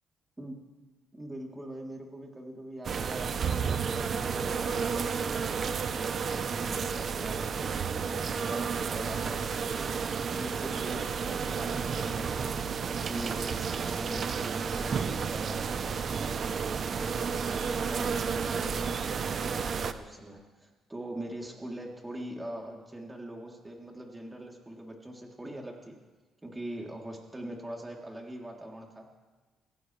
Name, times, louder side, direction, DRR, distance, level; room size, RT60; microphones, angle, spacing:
voice 1, 1.1-17.4 17.7-26.0 26.4-29.2, right 1 dB, 15° right, -1 dB, 3.2 m, -43 dB
sound 1, 2.8-19.9, right 6 dB, 50° right, 0.8 m, -31 dB
25.0 x 16.5 x 3.3 m, 1.3 s
cardioid pair, 90°, 0 cm